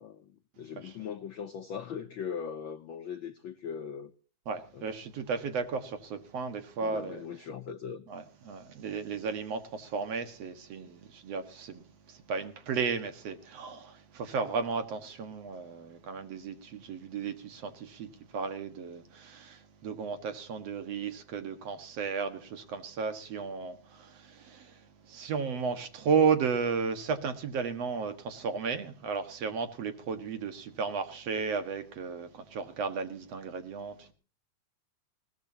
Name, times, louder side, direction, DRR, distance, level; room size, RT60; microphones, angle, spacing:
voice 1, 0.0-4.1 4.7-4.9 6.8-8.0, left 7 dB, 70° left, 1.1 m, -40 dB
voice 2, 4.5-7.2 8.1-11.8 12.1-24.7 25.1-34.1, right 5 dB, 60° right, 2.7 m, -34 dB
21.0 x 18.0 x 2.9 m
omnidirectional pair, 3.3 m